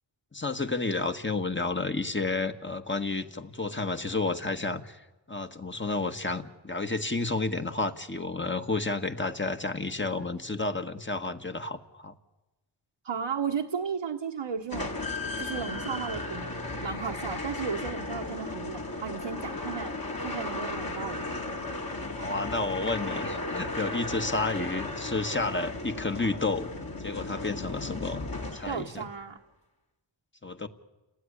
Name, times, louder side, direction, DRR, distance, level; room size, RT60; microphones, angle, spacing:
voice 1, 0.3-5.0 5.3-12.1 22.2-26.7 27.0-29.0 30.4-30.7, left 3 dB, 25° left, 8 dB, 1.7 m, -31 dB
voice 2, 13.0-15.0 15.4-16.5 16.8-19.9 20.2-21.3 28.7-29.4, right 6 dB, 75° right, 0 dB, 1.5 m, -34 dB
sound 1, 14.7-29.0, left 2 dB, 45° left, 3.4 m, -35 dB
29.5 x 19.0 x 10.0 m, 1.1 s
wide cardioid pair, 65°, 48 cm